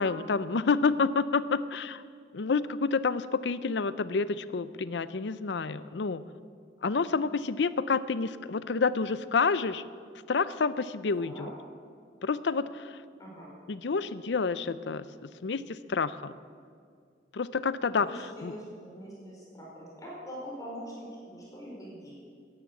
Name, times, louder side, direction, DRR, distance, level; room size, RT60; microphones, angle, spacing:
voice 1, 0.0-2.0 2.3-6.2 6.8-9.8 10.3-11.5 12.2-12.9 13.7-16.3 17.3-18.5, left 4 dB, 85° left, 15 dB, 0.6 m, -29 dB
voice 2, 18.0-22.1, equal, 20° left, -5 dB, 4.9 m, -43 dB
14.0 x 10.5 x 8.3 m, 2.2 s
head